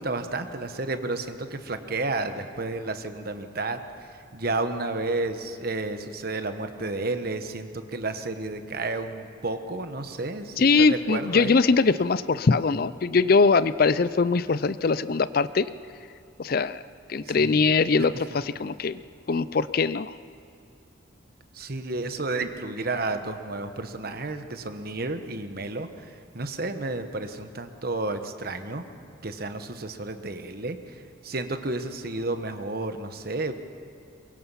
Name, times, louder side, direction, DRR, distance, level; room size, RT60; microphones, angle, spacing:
voice 1, 0.0-11.6 17.2-17.7 21.5-28.8 29.2-33.5, right 2 dB, 50° right, 8 dB, 1.2 m, -31 dB
voice 2, 10.6-15.7 16.4-16.8 17.1-19.0 19.3-20.1, left 4 dB, 50° left, 16 dB, 0.5 m, -22 dB
23.0 x 22.5 x 5.7 m, 2.5 s
head